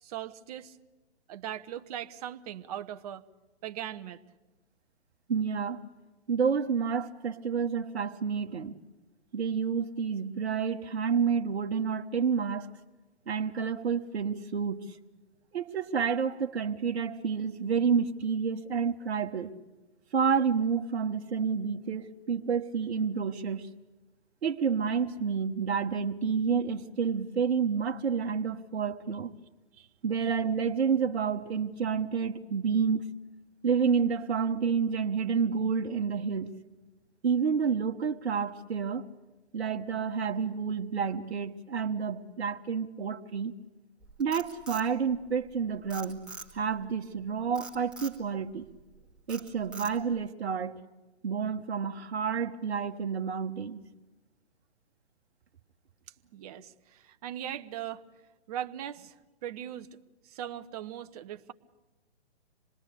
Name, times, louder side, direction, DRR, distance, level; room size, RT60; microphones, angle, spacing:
voice 1, 0.0-0.8 1.3-3.2 3.6-4.2 29.7-29.9 30.2-30.3 56.3-58.1 58.5-59.1 59.4-60.0 60.2-61.5, right 11 dB, 35° right, 0.9 m, -39 dB
voice 2, 5.3-5.8 6.3-8.8 9.3-12.7 13.3-15.0 15.5-19.5 20.1-23.7 24.4-29.3 30.0-33.1 33.6-36.5 37.2-39.1 39.5-43.5 44.2-46.3 46.5-48.7 49.3-50.8 51.2-53.8, right 6 dB, 65° right, 1.3 m, -29 dB
Frog, 44.0-45.5 45.9-46.8 47.6-48.2 48.7-49.0 49.3-50.2, right 3 dB, 5° right, 2.0 m, -44 dB
26.5 x 21.0 x 8.3 m
hypercardioid pair, 135°, 33 cm